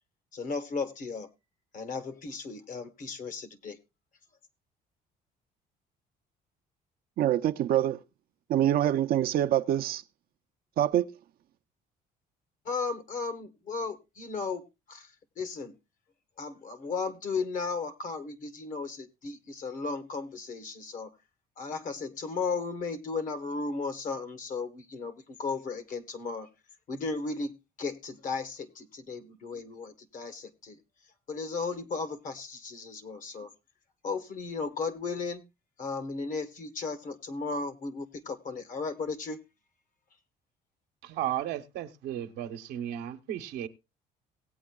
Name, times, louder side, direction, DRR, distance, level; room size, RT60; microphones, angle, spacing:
voice 1, 0.3-1.3 1.7-3.8 12.6-15.7 16.4-21.1 21.6-26.5 26.9-30.8 31.3-33.5 34.0-35.4 35.8-39.4, left 4 dB, 50° left, 1.3 m, -35 dB
voice 2, 7.2-8.0 8.5-10.0 10.8-11.1, right 12 dB, 60° right, 0.5 m, -25 dB
voice 3, 41.0-43.7, right 11 dB, 80° right, 0.9 m, -34 dB
17.5 x 8.6 x 2.3 m
cardioid pair, 110°, 17 cm